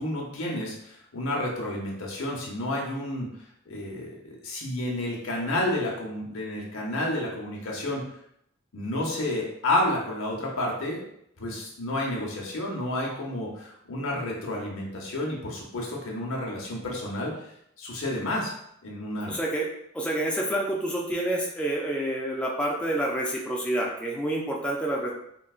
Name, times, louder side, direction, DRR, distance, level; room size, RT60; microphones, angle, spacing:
voice 1, 0.0-3.3 3.7-8.0 8.7-11.0 11.4-17.3 17.8-18.5 18.8-19.4, left 1 dB, 80° left, -2 dB, 0.9 m, -30 dB
voice 2, 19.3-19.7 19.9-25.1, right 1 dB, 5° left, -3 dB, 0.4 m, -28 dB
3.7 x 2.2 x 2.4 m, 0.74 s
head